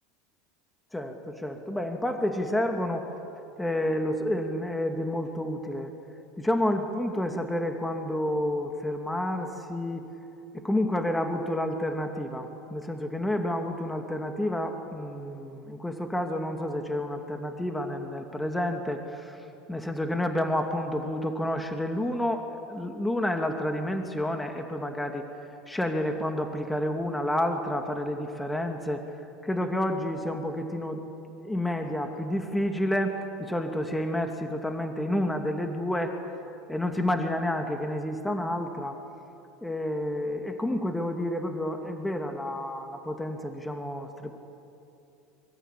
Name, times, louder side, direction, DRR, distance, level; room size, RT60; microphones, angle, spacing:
voice 1, 0.9-3.1 3.6-5.9 6.4-10.1 10.5-25.3 25.7-29.0 29.4-31.0 31.3-36.2 36.7-39.0 39.6-44.5, left 1 dB, 5° left, 4 dB, 2.5 m, -30 dB
24.5 x 23.5 x 8.5 m, 2.7 s
hypercardioid pair, 75°, 0 cm